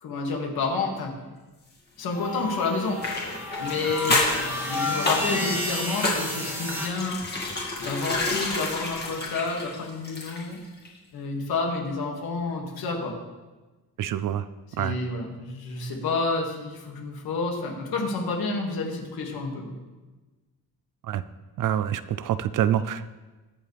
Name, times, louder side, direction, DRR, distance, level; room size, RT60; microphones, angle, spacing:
voice 1, 0.0-1.1 2.0-3.0 3.6-4.3 4.7-7.2 7.8-10.6 11.1-13.1 14.8-19.8, left 3 dB, 70° left, 0 dB, 2.4 m, -29 dB
sound 1, 2.1-6.9, left 2 dB, 5° right, 2.1 m, -31 dB
sound 2, 3.0-10.6 10.8-11.0, left 2 dB, 25° left, 2.2 m, -29 dB
voice 2, 14.0-14.4 14.8-15.0 21.1-21.2 21.6-23.1, right 10 dB, 55° right, 15 dB, 0.5 m, -26 dB
20.5 x 7.3 x 3.5 m, 1.2 s
wide cardioid pair, 175°, 38 cm